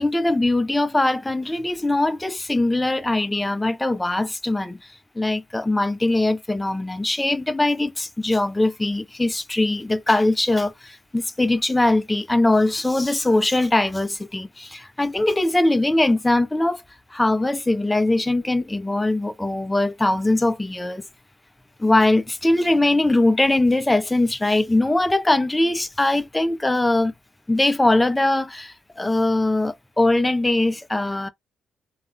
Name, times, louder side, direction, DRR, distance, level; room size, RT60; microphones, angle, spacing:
voice 1, 0.0-4.8 5.2-16.8 17.1-21.0 21.8-27.1 27.5-31.3, left 2 dB, 10° left, 0.4 m, -21 dB
2.3 x 2.0 x 3.1 m
cardioid pair, 90°, 0 cm